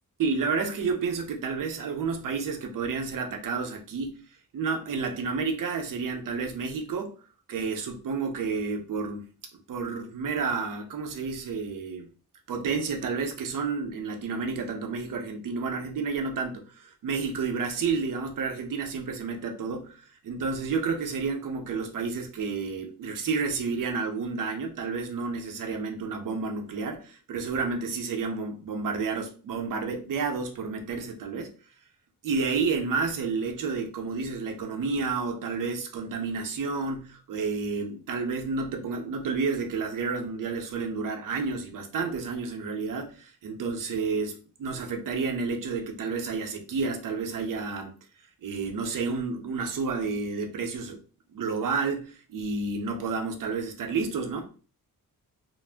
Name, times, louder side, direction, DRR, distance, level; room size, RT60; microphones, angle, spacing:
voice 1, 0.2-4.2 4.5-7.2 7.5-9.3 9.7-12.1 12.5-31.5 32.2-48.0 48.4-51.0 51.3-54.5, right 4 dB, 65° right, 0.7 m, -30 dB
2.5 x 2.0 x 3.4 m
cardioid pair, 105°, 35 cm